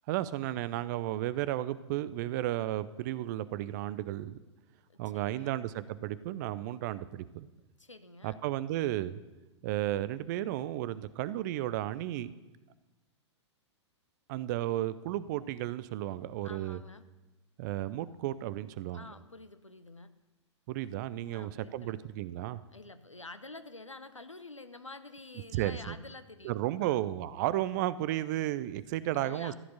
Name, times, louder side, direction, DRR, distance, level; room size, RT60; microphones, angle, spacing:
voice 1, 0.1-4.4 5.0-7.5 8.2-9.2 9.6-12.3 14.3-16.8 17.6-19.0 20.7-22.6 25.5-25.9 26.4-29.6, right 14 dB, 40° right, 16 dB, 0.5 m, -33 dB
voice 2, 4.9-5.6 7.8-8.3 16.4-17.1 18.9-20.1 21.3-22.1 22.7-26.5 26.8-27.0 29.1-29.6, left 2 dB, 90° left, 12 dB, 0.8 m, -48 dB
14.0 x 7.8 x 6.8 m, 1.1 s
figure-of-eight pair, 105°, 15 cm